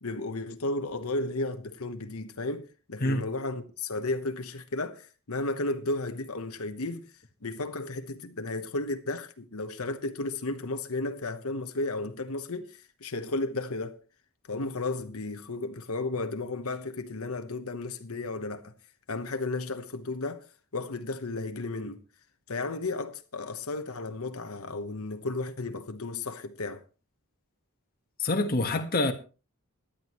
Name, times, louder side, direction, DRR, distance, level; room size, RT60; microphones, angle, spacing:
voice 1, 0.0-14.0 14.5-18.7 19.1-22.0 22.5-26.8, left 2 dB, 85° left, 1.1 m, -34 dB
voice 2, 28.2-29.1, left 2 dB, 45° left, 1.4 m, -26 dB
18.0 x 11.5 x 3.1 m
head